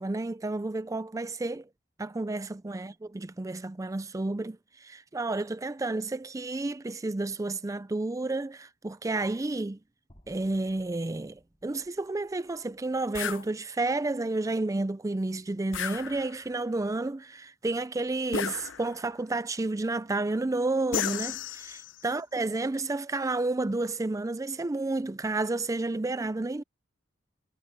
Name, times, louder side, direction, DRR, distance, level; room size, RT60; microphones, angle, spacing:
voice 1, 0.0-1.7 2.0-9.8 10.3-26.6, right 2 dB, 15° right, 0.4 m, -31 dB
sound 1, 10.1-14.3, equal, 25° left, 6.6 m, -63 dB
sound 2, 13.1-13.5 15.7-16.5 18.3-19.1 20.9-22.0, left 8 dB, 80° left, 0.7 m, -34 dB
head